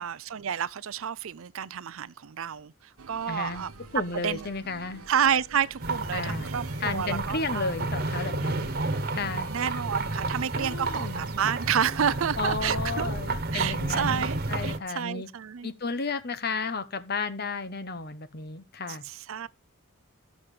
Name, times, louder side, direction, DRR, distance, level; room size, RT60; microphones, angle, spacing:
voice 1, 0.0-2.7 3.1-3.7 4.2-4.5 5.1-7.7 9.5-13.2 13.5-15.7 19.0-19.5, right 8 dB, 70° right, 0.5 m, -30 dB
sound 1, 3.0-12.6, right 4 dB, 90° right, 1.0 m, -47 dB
voice 2, 3.3-3.6 3.9-5.1 6.1-6.5 6.8-8.7 9.1-9.5 10.6-11.3 12.4-15.3 15.6-19.0, left 4 dB, 45° left, 1.0 m, -33 dB
sound 2, 5.8-14.8, right 2 dB, 45° right, 1.4 m, -31 dB
12.0 x 7.3 x 4.9 m
head